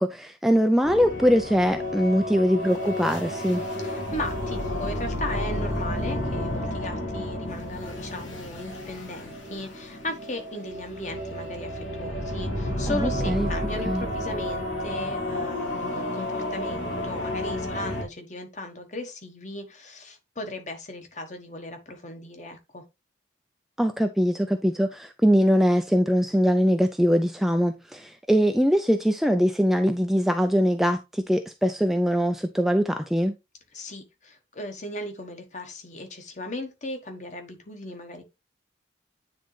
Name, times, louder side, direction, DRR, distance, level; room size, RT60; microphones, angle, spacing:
voice 1, 0.0-3.6 12.9-13.5 13.9-14.0 23.8-33.3, equal, ahead, 0.4 m, -22 dB
sound 1, 0.8-18.0, left 1 dB, 85° left, 2.1 m, -31 dB
voice 2, 3.8-22.8 33.7-38.2, left 1 dB, 40° left, 1.3 m, -37 dB
9.4 x 3.8 x 3.2 m
head